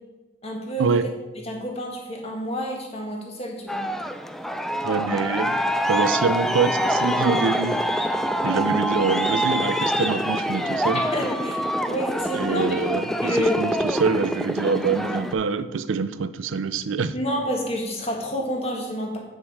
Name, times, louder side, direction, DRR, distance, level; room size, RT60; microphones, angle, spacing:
voice 1, 0.4-0.9 1.4-3.8 11.1-11.6 11.9-12.8 13.2-13.6 17.1-19.2, equal, 30° left, 0 dB, 1.6 m, -28 dB
Aircraft, 3.7-15.3, equal, ahead, 0.3 m, -25 dB
voice 2, 4.8-5.6 5.9-7.8 8.4-11.0 12.3-17.1, right 5 dB, 85° right, 13 dB, 0.5 m, -25 dB
8.2 x 6.3 x 4.7 m, 1.2 s
head